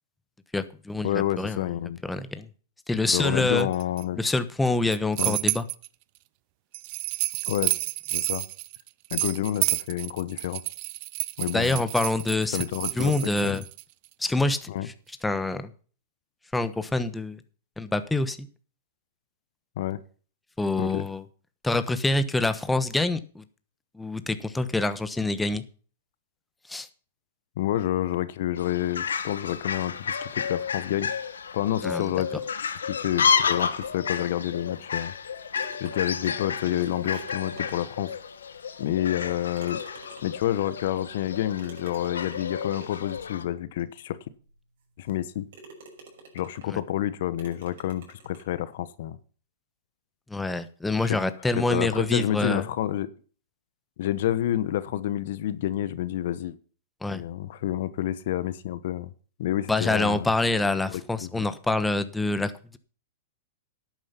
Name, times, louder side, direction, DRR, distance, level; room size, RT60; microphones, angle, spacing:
voice 1, 0.5-1.7 2.0-2.5 2.9-3.7 4.2-5.6 11.5-12.6 12.9-13.6 14.2-14.9 15.2-15.7 16.5-17.4 17.8-18.5 20.6-21.2 21.6-23.4 23.9-25.6 26.7-26.9 31.8-32.1 46.7-46.8 50.3-52.6 57.0-57.2 59.7-62.8, left 2 dB, 5° left, 11 dB, 1.0 m, -26 dB
voice 2, 1.0-2.0 3.1-4.2 5.2-5.4 7.5-7.7 8.1-8.5 9.1-10.6 11.4-11.8 12.5-13.6 14.7-14.9 19.8-20.0 20.8-21.1 27.6-31.1 31.5-32.4 32.9-35.1 35.8-38.1 38.8-39.8 40.2-44.2 45.0-45.5 46.3-49.2 51.1-51.2 51.7-53.1 54.0-56.6 57.1-59.1 59.4-60.3 60.9-61.5, left 12 dB, 65° left, 15 dB, 0.9 m, -29 dB
sound 1, 3.6-4.0 4.7-5.9 6.7-13.8, right 23 dB, 50° right, 0.5 m, -30 dB
Fowl, 28.6-43.4, left 6 dB, 85° left, 1.2 m, -31 dB
sound 2, 33.2-34.2 35.2-35.3 35.5-38.1 38.7-38.8 39.5-40.5 41.6-43.1 43.8-43.9 44.4-44.5 45.0-45.2 45.5-46.8 47.4-48.5, right 3 dB, 65° right, 5.8 m, -49 dB
11.0 x 9.2 x 5.8 m, 0.41 s
hypercardioid pair, 115°, 0 cm